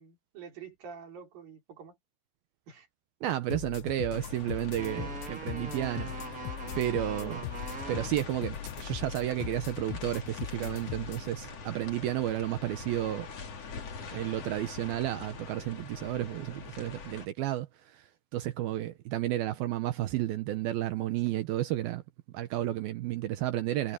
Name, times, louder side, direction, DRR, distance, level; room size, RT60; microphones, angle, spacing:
voice 1, 0.0-2.0 2.7-2.9 7.2-7.4, right 6 dB, 55° right, 5.9 m, -47 dB
voice 2, 3.2-6.5 6.8-7.4 7.9-13.3 14.1-17.7 17.9-18.0 18.3-22.0 22.3-24.0, right 14 dB, 75° right, 2.3 m, -32 dB
sound 1, 3.5-11.3, left 14 dB, 80° left, 2.8 m, -40 dB
sound 2, 4.1-17.3, left 5 dB, 40° left, 3.0 m, -44 dB
sound 3, 4.8-8.1 8.8-9.7, right 3 dB, 25° right, 2.1 m, -42 dB
omnidirectional pair, 5.1 m